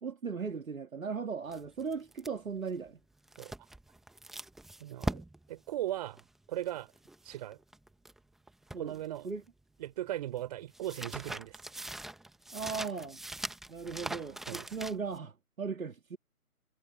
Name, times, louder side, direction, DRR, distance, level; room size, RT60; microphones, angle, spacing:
voice 1, 0.0-3.0 8.7-9.0 9.2-9.4 12.5-13.2 13.7-16.2, right 5 dB, 65° right, 2.2 m, -37 dB
sound 1, 1.5-8.2 8.5-9.6 9.9-15.2, right 2 dB, ahead, 1.1 m, -42 dB
voice 2, 4.8-5.2 5.5-6.2 6.5-6.9 7.2-7.6 8.8-9.3 9.8-11.6 14.5-14.7, right 13 dB, 25° right, 5.0 m, -38 dB
figure-of-eight pair, 150°, 44 cm